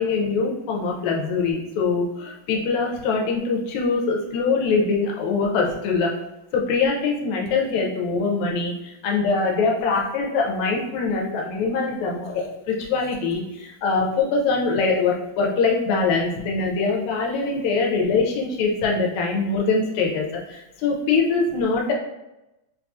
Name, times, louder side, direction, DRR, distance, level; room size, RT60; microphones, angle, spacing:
voice 1, 0.0-6.1 6.5-21.9, left 4 dB, 80° left, -1 dB, 1.9 m, -23 dB
5.3 x 2.3 x 2.6 m, 0.93 s
omnidirectional pair, 3.4 m